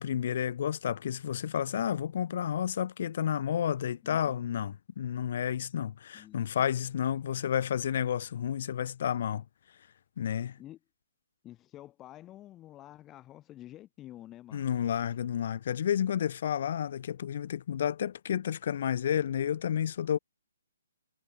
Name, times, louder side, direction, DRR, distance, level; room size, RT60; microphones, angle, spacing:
voice 1, 0.0-9.4 10.2-10.6 14.5-20.2, left 9 dB, 50° left, 1.0 m, -31 dB
voice 2, 4.0-4.4 6.1-6.4 7.2-7.4 10.6-10.8 11.4-14.7, left 14 dB, 20° left, 4.0 m, -49 dB
figure-of-eight pair, 135°, 0 cm